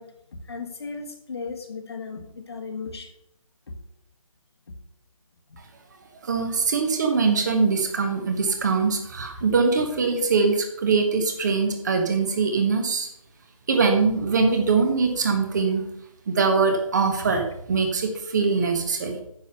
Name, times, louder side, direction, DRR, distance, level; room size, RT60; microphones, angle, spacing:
voice 1, 0.0-3.1 5.5-5.6, left 4 dB, 45° left, 4 dB, 1.7 m, -36 dB
voice 2, 6.2-13.1 13.7-15.8 16.3-19.2, right 4 dB, 30° right, 4 dB, 1.5 m, -22 dB
9.6 x 5.9 x 6.8 m, 0.75 s
figure-of-eight pair, 155°, 18 cm